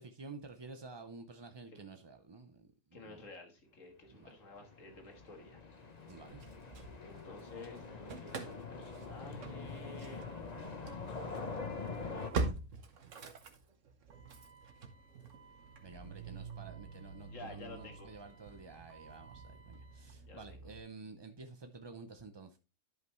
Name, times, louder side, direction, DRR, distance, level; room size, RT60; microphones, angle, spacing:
voice 1, 0.0-3.3 4.1-4.3 6.1-6.4 15.8-22.6, right 4 dB, 40° right, 0.3 m, -51 dB
voice 2, 2.9-5.6 7.0-10.2 17.3-18.1 20.3-20.6, left 2 dB, 70° left, 2.1 m, -51 dB
sound 1, 4.4-12.3, left 4 dB, 35° left, 1.1 m, -44 dB
Engine starting / Slam, 6.1-7.5 7.8-20.8, right 4 dB, 65° right, 1.4 m, -45 dB
11.5 x 5.4 x 3.1 m
omnidirectional pair, 1.4 m